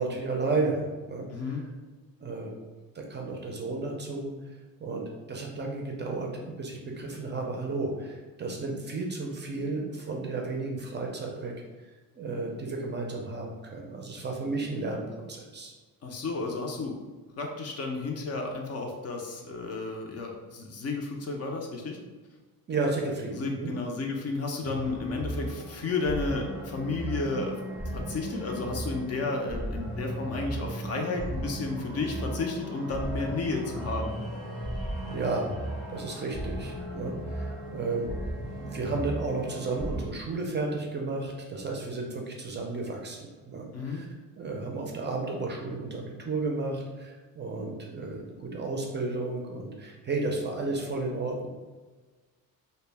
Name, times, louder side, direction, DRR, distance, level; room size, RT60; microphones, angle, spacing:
voice 1, 0.0-1.3 2.2-2.5 2.9-4.3 4.8-11.5 12.2-15.7 22.7-23.7 35.1-44.1 44.4-51.5, right 3 dB, 30° right, 0 dB, 0.4 m, -33 dB
voice 2, 1.3-1.6 16.0-17.0 17.4-22.0 23.3-27.6 27.9-34.2 43.7-44.1, left 3 dB, 45° left, 2 dB, 0.5 m, -32 dB
sound 1, 24.6-40.1, right 1 dB, ahead, 0.7 m, -36 dB
2.1 x 2.1 x 3.2 m, 1.3 s
cardioid pair, 105°, 36 cm